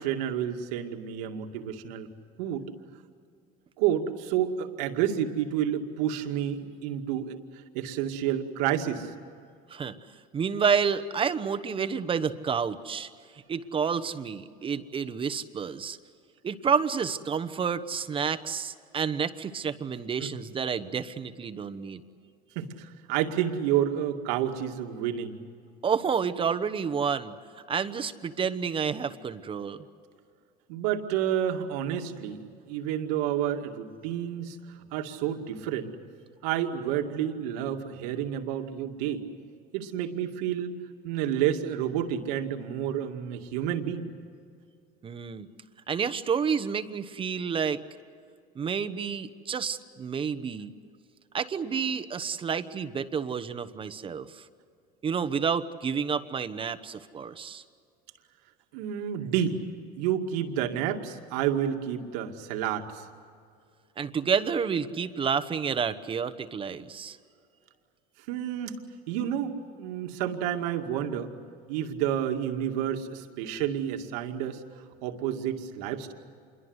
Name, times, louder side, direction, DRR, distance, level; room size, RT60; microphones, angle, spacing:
voice 1, 0.0-2.1 2.4-2.7 3.8-9.1 20.2-20.4 22.6-25.4 30.7-35.9 36.4-39.2 39.7-40.8 41.0-44.1 58.7-59.6 60.0-63.0 68.3-68.8 69.1-71.3 71.7-74.6 75.0-76.1, right 10 dB, 85° right, 5 dB, 2.3 m, -30 dB
voice 2, 10.3-13.1 13.5-16.0 16.4-22.0 25.8-27.3 27.7-29.8 45.0-45.5 45.9-47.8 48.5-50.7 51.3-54.4 55.0-57.6 64.0-67.2, right 6 dB, 25° right, 11 dB, 1.1 m, -29 dB
27.5 x 22.5 x 8.1 m, 2.3 s
cardioid pair, 130°, 20 cm